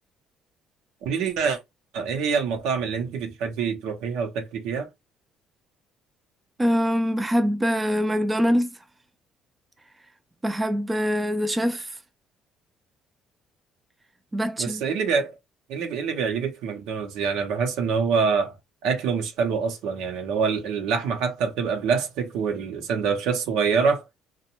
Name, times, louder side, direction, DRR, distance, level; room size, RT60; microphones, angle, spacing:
voice 1, 1.0-1.6 1.9-4.9 14.6-15.3 15.7-18.5 18.8-24.0, right 5 dB, 80° right, 0.7 m, -25 dB
voice 2, 6.6-8.8 10.4-12.0 14.3-14.8, equal, 20° right, 0.4 m, -24 dB
2.5 x 2.1 x 2.8 m
supercardioid pair, 70°, 0 cm